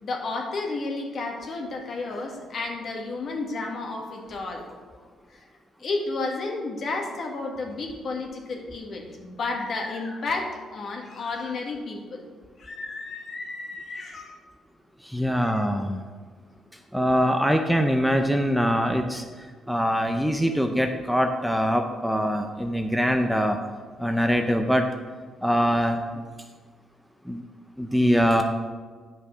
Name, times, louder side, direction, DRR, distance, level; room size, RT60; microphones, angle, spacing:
voice 1, 0.0-5.0 5.3-5.4 5.8-12.2 12.6-14.4 15.4-15.6, left 3 dB, 55° left, 1 dB, 1.8 m, -32 dB
voice 2, 15.0-16.0 16.9-19.2 19.7-23.6 24.0-24.9 25.4-26.0 27.3-27.4 27.8-28.4, equal, ahead, 5 dB, 0.6 m, -23 dB
9.6 x 5.4 x 5.0 m, 1.5 s
cardioid pair, 90°, 0 cm